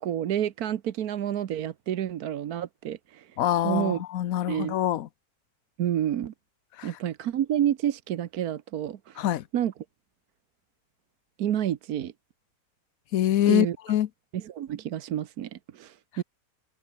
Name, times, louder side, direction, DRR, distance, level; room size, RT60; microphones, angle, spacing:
voice 1, 0.0-3.4 3.6-4.0 4.5-4.8 5.8-6.3 6.8-9.3 9.5-9.7 11.4-12.1 13.5-13.8 14.3-16.2, right 10 dB, 80° right, 1.4 m, -29 dB
voice 2, 3.4-5.1 6.8-6.9 9.2-9.4 13.1-14.1, left 12 dB, 70° left, 1.2 m, -25 dB
omnidirectional pair, 1.6 m